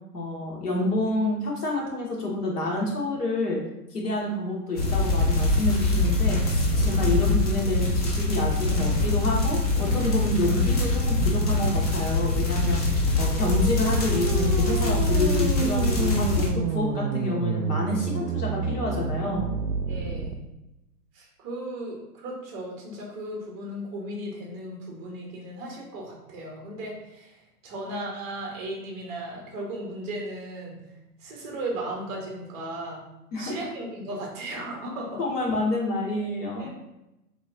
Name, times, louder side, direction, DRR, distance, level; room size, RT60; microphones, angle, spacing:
voice 1, 0.1-3.6 3.9-19.5 33.3-33.6 35.2-36.7, left 1 dB, 75° left, -2 dB, 1.5 m, -28 dB
sound 1, 4.8-16.5, left 2 dB, 25° left, 0.4 m, -24 dB
sound 2, 13.2-20.3, right 5 dB, 75° right, 0.6 m, -30 dB
voice 2, 19.9-20.4 21.1-30.8 31.2-33.0 33.4-35.2 36.6-36.7, right 1 dB, 15° right, -1 dB, 0.6 m, -36 dB
4.1 x 3.1 x 2.5 m, 0.92 s
hypercardioid pair, 130°, 47 cm